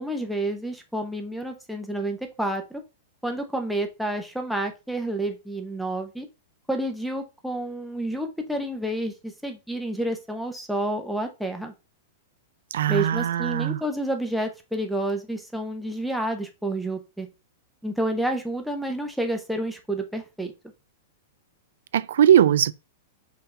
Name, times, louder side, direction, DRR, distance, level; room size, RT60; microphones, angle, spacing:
voice 1, 0.0-2.8 3.2-6.3 6.7-11.7 12.9-17.3 17.8-20.5, right 1 dB, ahead, 0.7 m, -29 dB
voice 2, 12.7-13.8 21.9-22.7, right 10 dB, 80° right, 0.3 m, -20 dB
5.7 x 2.8 x 3.3 m
supercardioid pair, 155°, 0 cm